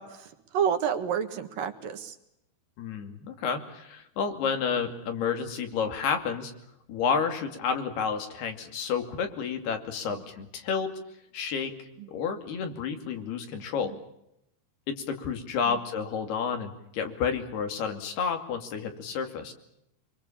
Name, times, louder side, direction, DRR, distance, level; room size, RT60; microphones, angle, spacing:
voice 1, 0.0-2.1 12.0-12.1 15.7-15.8, right 8 dB, 65° right, 7 dB, 3.1 m, -30 dB
voice 2, 2.8-6.5 6.9-10.9 11.3-11.7 12.1-13.9 14.9-19.5, left 6 dB, 75° left, 6 dB, 4.6 m, -30 dB
25.5 x 24.5 x 7.2 m, 0.83 s
omnidirectional pair, 4.6 m